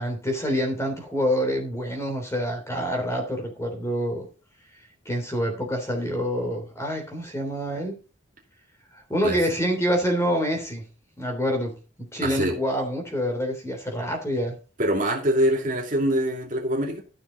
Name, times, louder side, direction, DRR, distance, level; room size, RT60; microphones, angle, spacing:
voice 1, 0.0-4.2 5.0-8.0 8.9-10.8 11.2-11.7 12.1-14.5, equal, 15° left, 3.4 m, -26 dB
voice 2, 12.2-12.5 14.8-17.0, right 1 dB, 40° right, 2.5 m, -24 dB
13.5 x 6.6 x 4.0 m
head